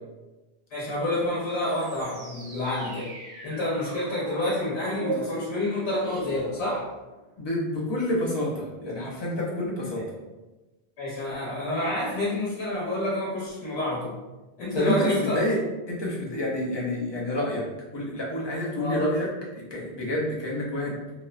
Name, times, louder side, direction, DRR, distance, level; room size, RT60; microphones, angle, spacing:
voice 1, 0.7-3.1 3.4-6.9 9.9-10.0 11.0-14.2 14.6-15.5 18.8-19.0, left 1 dB, 75° left, -7 dB, 1.0 m, -28 dB
sound 1, 1.6-7.3, right 3 dB, 70° right, 0.9 m, -39 dB
voice 2, 7.4-10.1 14.7-15.6 15.9-19.3 19.6-21.0, left 1 dB, 35° left, -4 dB, 0.5 m, -28 dB
2.8 x 2.1 x 2.4 m, 1.1 s
omnidirectional pair, 1.1 m